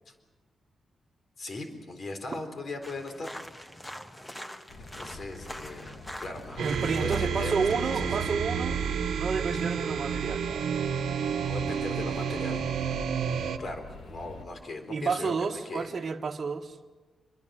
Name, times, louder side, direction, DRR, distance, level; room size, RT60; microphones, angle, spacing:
voice 1, 1.4-3.3 4.9-8.1 9.5-9.6 11.4-12.6 13.0-13.2 13.6-15.9, left 2 dB, 45° left, 6 dB, 4.0 m, -39 dB
sound 1, 2.8-8.3, equal, 10° left, 1.5 m, -43 dB
sound 2, 4.7-14.4, left 3 dB, 65° left, 3.0 m, -46 dB
voice 2, 6.6-8.8 9.2-10.4 14.9-16.8, right 5 dB, 45° right, 2 dB, 1.7 m, -30 dB
sound 3, 6.6-13.6, right 7 dB, 90° right, 1.4 m, -30 dB
28.0 x 23.0 x 7.8 m, 1.3 s
wide cardioid pair, 140°, 0 cm